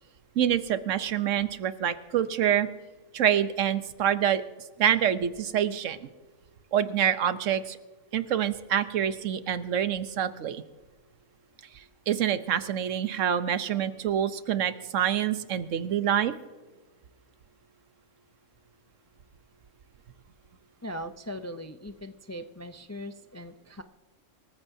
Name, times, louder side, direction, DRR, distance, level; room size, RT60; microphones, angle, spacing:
voice 1, 0.4-2.7 3.1-4.4 4.8-6.1 6.7-7.8 8.1-10.6 11.7-16.3, right 9 dB, 85° right, 12 dB, 1.2 m, -26 dB
voice 2, 20.8-23.8, equal, 25° left, 8 dB, 0.3 m, -39 dB
26.5 x 14.5 x 2.7 m, 1.3 s
omnidirectional pair, 1.3 m